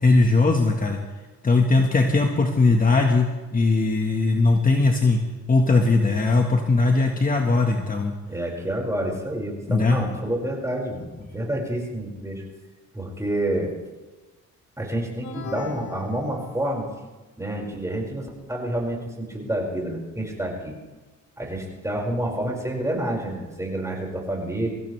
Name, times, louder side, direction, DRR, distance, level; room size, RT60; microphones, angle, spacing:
voice 1, 0.0-1.0 1.4-3.3 3.5-5.2 5.5-8.1 9.7-10.0, left 3 dB, 30° left, 2 dB, 1.8 m, -19 dB
voice 2, 8.3-12.4 12.9-13.7 14.8-16.9 17.4-20.7 21.4-24.7, right 1 dB, 10° right, -2 dB, 6.1 m, -28 dB
sound 1, 15.2-17.1, left 6 dB, 75° left, 2.7 m, -39 dB
24.0 x 16.0 x 3.5 m, 1.2 s
cardioid pair, 90°, 30 cm